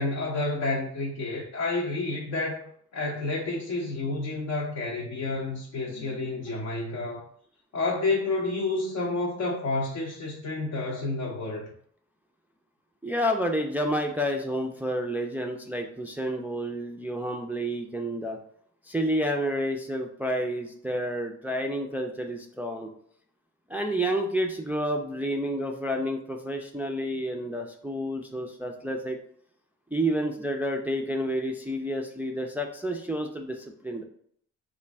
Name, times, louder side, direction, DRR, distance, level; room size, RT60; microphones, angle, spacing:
voice 1, 0.0-7.2 7.7-11.7, left 2 dB, 55° left, -2 dB, 0.7 m, -30 dB
voice 2, 13.0-18.4 18.8-22.9 23.7-29.2 29.9-34.0, equal, 5° right, 2 dB, 0.3 m, -30 dB
3.1 x 2.4 x 3.3 m, 0.63 s
cardioid pair, 85°, 32 cm